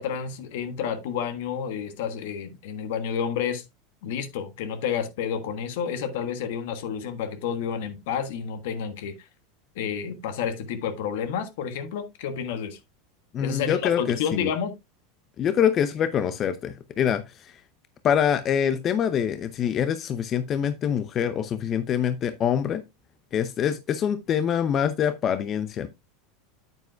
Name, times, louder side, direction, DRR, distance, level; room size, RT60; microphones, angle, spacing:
voice 1, 0.0-3.6 4.0-9.3 9.7-12.8 13.4-14.7, left 7 dB, 70° left, 1.4 m, -30 dB
voice 2, 13.3-14.5 15.4-17.6 18.0-22.8 23.3-25.9, left 8 dB, 40° left, 0.6 m, -25 dB
9.0 x 8.2 x 2.3 m
hypercardioid pair, 95°, 0 cm